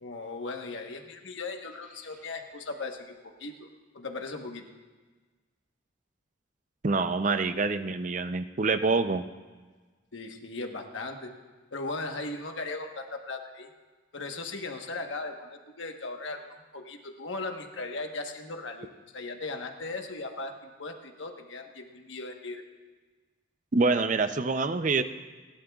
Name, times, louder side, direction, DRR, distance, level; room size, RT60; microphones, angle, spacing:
voice 1, 0.0-3.7 3.9-4.7 10.1-11.3 11.7-13.7 14.1-22.6, left 3 dB, 75° left, 4 dB, 1.2 m, -38 dB
voice 2, 6.8-9.2 23.7-25.0, right 3 dB, 40° right, 10 dB, 0.5 m, -26 dB
30.0 x 11.5 x 2.4 m, 1.4 s
head